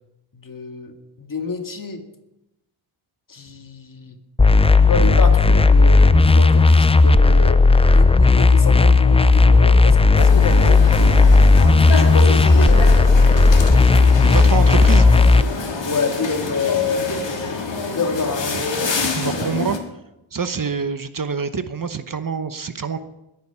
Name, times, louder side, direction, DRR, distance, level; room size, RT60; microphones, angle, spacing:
voice 1, 0.3-2.0 3.3-4.2 4.9-7.6 7.9-11.0 11.9-13.1 15.8-17.6 17.9-19.0 19.3-19.6, left 4 dB, 40° left, 5 dB, 2.1 m, -27 dB
sound 1, 4.4-15.4, left 3 dB, 15° left, 0.4 m, -13 dB
sound 2, 10.2-19.8, left 4 dB, 60° left, 2.6 m, -27 dB
voice 2, 14.3-15.1 18.5-18.6 19.0-19.8 20.3-23.0, right 5 dB, 40° right, 10 dB, 1.0 m, -26 dB
21.0 x 9.3 x 5.8 m, 0.92 s
cardioid pair, 80°, 49 cm